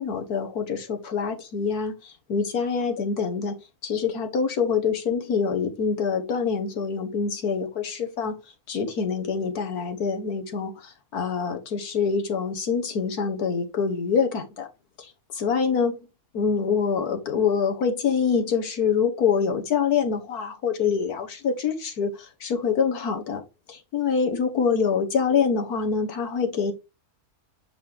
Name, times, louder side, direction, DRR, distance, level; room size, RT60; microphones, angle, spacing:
voice 1, 0.0-3.5 3.8-8.3 8.7-14.7 15.0-16.1 16.3-23.4 23.7-26.7, left 6 dB, 80° left, 1.8 m, -25 dB
6.2 x 4.7 x 3.5 m
omnidirectional pair, 1.6 m